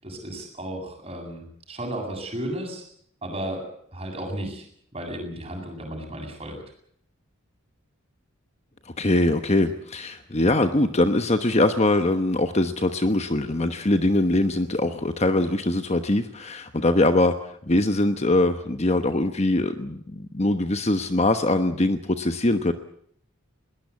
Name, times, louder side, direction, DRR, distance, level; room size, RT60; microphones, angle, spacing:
voice 1, 0.0-2.8 3.2-3.6 3.9-4.6 4.9-6.5, right 1 dB, 25° right, 2 dB, 7.8 m, -34 dB
voice 2, 8.9-17.3 17.7-22.7, left 2 dB, 30° left, 8 dB, 1.1 m, -22 dB
21.5 x 19.0 x 8.6 m, 0.67 s
head